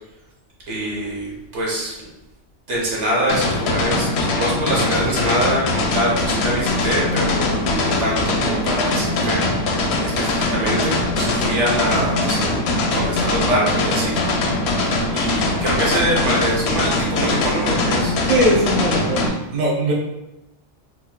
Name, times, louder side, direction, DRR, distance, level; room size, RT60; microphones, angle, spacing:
voice 1, 0.7-2.1 2.7-9.4 10.0-12.5 12.9-14.2 15.1-18.1, right 1 dB, 75° right, -3 dB, 1.2 m, -24 dB
sound 1, 3.3-19.3, left 2 dB, 70° left, 0.8 m, -21 dB
voice 2, 18.3-19.9, equal, 45° right, -3 dB, 0.7 m, -19 dB
3.8 x 3.0 x 2.2 m, 0.94 s
omnidirectional pair, 1.2 m